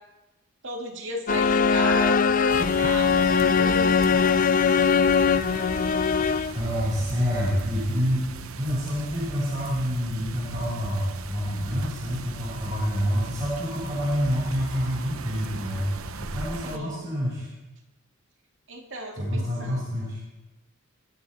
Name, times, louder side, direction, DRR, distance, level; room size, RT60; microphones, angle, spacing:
voice 1, 0.6-5.3 16.6-17.1 18.7-20.0, right 1 dB, 60° right, 1 dB, 2.4 m, -36 dB
sound 1, 1.3-6.7, left 6 dB, 40° left, 0.4 m, -21 dB
sound 2, 2.5-16.8, right 3 dB, 90° right, 0.9 m, -38 dB
voice 2, 6.5-17.5 19.1-20.2, equal, 20° right, -11 dB, 7.9 m, -27 dB
24.5 x 13.0 x 4.2 m, 1.1 s
head